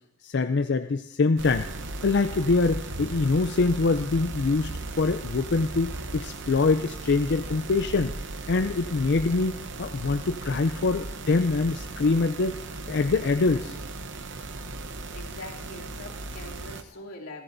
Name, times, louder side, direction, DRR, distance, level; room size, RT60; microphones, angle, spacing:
voice 1, 0.2-1.7 2.0-4.7 5.0-8.1 8.5-12.6 12.9-13.8, left 3 dB, 50° left, 8 dB, 0.4 m, -24 dB
sound 1, 1.4-16.8, right 2 dB, 55° right, 0.9 m, -37 dB
voice 2, 15.1-17.4, left 2 dB, 85° left, -2 dB, 3.0 m, -43 dB
26.5 x 15.0 x 2.7 m, 0.82 s
head